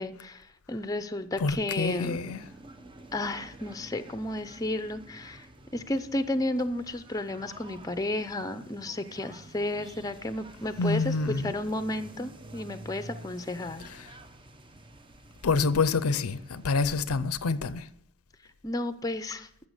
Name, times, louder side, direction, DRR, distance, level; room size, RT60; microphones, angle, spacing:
voice 1, 0.0-2.2 3.1-5.5 5.7-11.1 11.4-13.8 18.6-19.5, left 1 dB, 15° left, 0.6 m, -32 dB
voice 2, 1.4-2.4 10.8-11.5 15.4-17.9, left 4 dB, 80° left, 0.6 m, -27 dB
sound 1, 1.9-17.0, right 1 dB, 25° right, 0.7 m, -49 dB
14.5 x 6.7 x 6.4 m
head